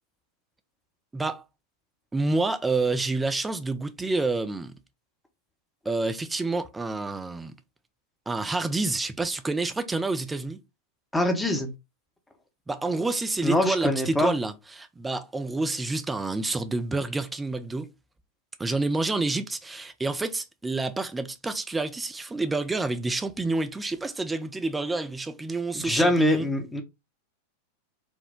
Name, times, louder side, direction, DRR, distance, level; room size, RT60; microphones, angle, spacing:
voice 1, 1.1-1.4 2.1-4.7 5.9-7.5 8.3-10.6 12.7-17.9 18.6-26.5, right 3 dB, 10° right, 0.4 m, -28 dB
voice 2, 11.1-11.7 13.4-14.3 25.7-26.8, left 1 dB, 5° left, 0.9 m, -24 dB
4.4 x 2.2 x 3.6 m
figure-of-eight pair, 90°, 0 cm